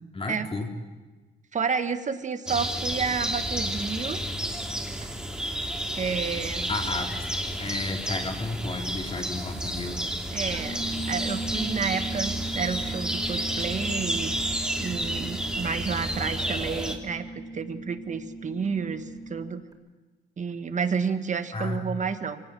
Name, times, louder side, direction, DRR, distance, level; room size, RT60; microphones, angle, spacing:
voice 1, 0.1-0.7 6.7-10.0 21.5-21.9, left 3 dB, 30° left, 2 dB, 3.3 m, -33 dB
voice 2, 1.5-4.2 5.9-6.7 10.3-14.3 14.8-19.6 20.4-22.4, right 6 dB, 40° right, 9 dB, 1.6 m, -30 dB
sound 1, 2.5-17.0, right 1 dB, 5° right, 2.9 m, -31 dB
sound 2, 10.5-19.7, right 2 dB, 20° right, 4.3 m, -38 dB
25.0 x 18.5 x 7.7 m, 1.2 s
cardioid pair, 90°, 20 cm